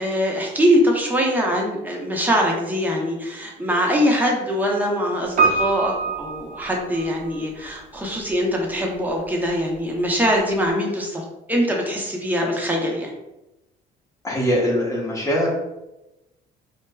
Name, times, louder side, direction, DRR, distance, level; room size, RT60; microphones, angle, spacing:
voice 1, 0.0-13.1, equal, 10° right, -1 dB, 0.7 m, -22 dB
Piano, 5.4-7.4 7.7-7.8, right 4 dB, 50° right, 0.7 m, -24 dB
voice 2, 14.2-15.5, equal, 20° left, -5 dB, 1.1 m, -22 dB
4.4 x 2.2 x 2.2 m, 0.94 s
cardioid pair, 110°, 17 cm